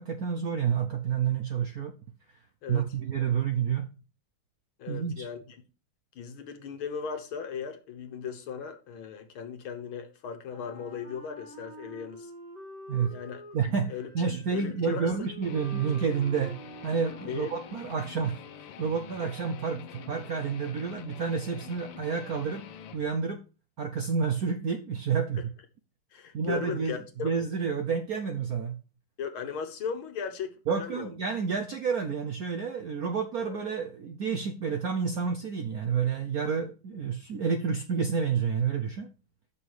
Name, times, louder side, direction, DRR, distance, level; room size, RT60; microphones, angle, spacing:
voice 1, 0.0-1.9 2.7-3.9 4.9-5.3 12.9-13.1 13.5-16.6 16.8-18.4 18.8-22.6 22.9-23.4 23.8-25.5 26.3-27.0 27.2-28.8 30.7-39.1, right 6 dB, 65° right, 0.9 m, -29 dB
voice 2, 4.8-5.4 6.2-12.3 13.1-13.4 13.9-14.1 14.5-15.3 17.2-17.5 26.1-27.3 29.2-31.1 33.4-33.6, left 6 dB, 70° left, 1.9 m, -37 dB
Wind instrument woodwind instrument, 10.5-18.8, equal, 50° right, 4.5 m, -48 dB
Guitar, 15.4-23.0, left 8 dB, 90° left, 1.7 m, -46 dB
8.1 x 6.2 x 4.7 m
omnidirectional pair, 2.4 m